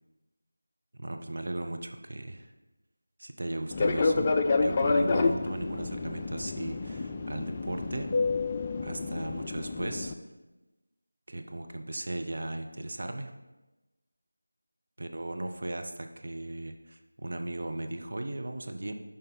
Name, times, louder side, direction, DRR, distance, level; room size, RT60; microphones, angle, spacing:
voice 1, 1.0-2.5 3.2-4.3 4.6-8.1 8.8-10.1 11.3-13.3 15.0-18.9, right 1 dB, 50° right, 5 dB, 0.7 m, -37 dB
Fixed-wing aircraft airplane, 3.7-10.1, left 3 dB, 20° left, 0.4 m, -29 dB
6.7 x 5.3 x 5.4 m, 1.1 s
figure-of-eight pair, 170°, 0 cm